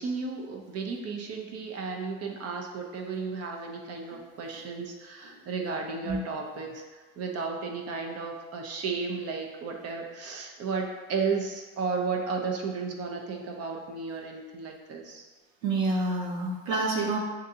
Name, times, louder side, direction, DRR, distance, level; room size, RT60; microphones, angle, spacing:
voice 1, 0.0-15.3, right 4 dB, 40° right, 1 dB, 0.7 m, -34 dB
voice 2, 15.6-17.2, right 3 dB, 85° right, -2 dB, 1.1 m, -28 dB
6.3 x 2.6 x 2.7 m, 1.4 s
supercardioid pair, 95°, 40 cm